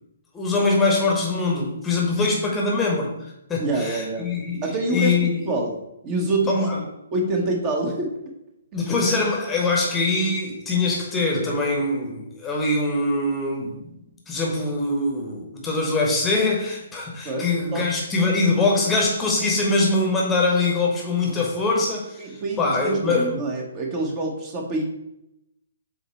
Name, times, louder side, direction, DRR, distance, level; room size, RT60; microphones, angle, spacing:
voice 1, 0.3-5.4 6.5-6.8 8.7-13.9 14.3-23.4, left 3 dB, 10° left, -2 dB, 1.1 m, -23 dB
voice 2, 3.6-4.3 4.6-5.7 6.0-6.7 7.1-8.1 8.7-8.8 17.2-17.8 22.2-24.8, right 2 dB, 25° right, 1 dB, 1.1 m, -26 dB
7.6 x 2.9 x 4.3 m, 0.85 s
figure-of-eight pair, 130°, 0 cm